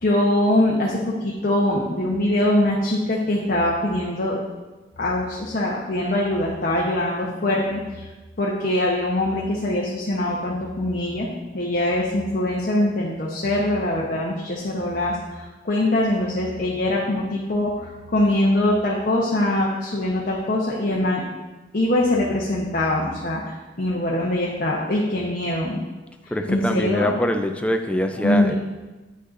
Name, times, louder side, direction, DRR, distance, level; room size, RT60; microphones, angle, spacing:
voice 1, 0.0-4.4 5.0-8.1 8.4-11.3 11.5-21.2 21.7-25.8 26.5-27.2 28.2-28.5, left 1 dB, 50° left, -4 dB, 0.9 m, -23 dB
voice 2, 26.3-28.5, equal, 5° left, 5 dB, 0.5 m, -23 dB
9.4 x 6.4 x 2.6 m, 1.2 s
head